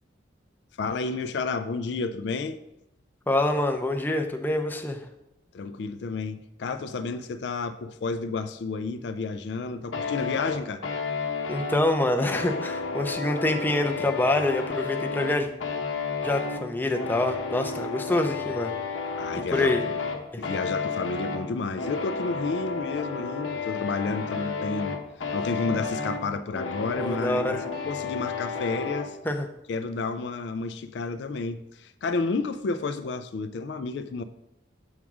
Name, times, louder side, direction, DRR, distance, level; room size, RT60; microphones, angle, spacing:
voice 1, 0.8-2.6 5.5-10.9 19.2-19.8 20.4-25.0 25.3-29.2 29.7-34.2, left 4 dB, 60° left, 0.4 m, -31 dB
voice 2, 3.3-5.1 11.5-15.5 16.2-18.7 19.4-19.8 20.3-20.4 26.9-27.6 29.2-29.5, left 1 dB, 10° left, 0.5 m, -26 dB
sound 1, 9.9-29.1, left 4 dB, 90° left, 0.9 m, -32 dB
7.2 x 3.6 x 6.0 m
head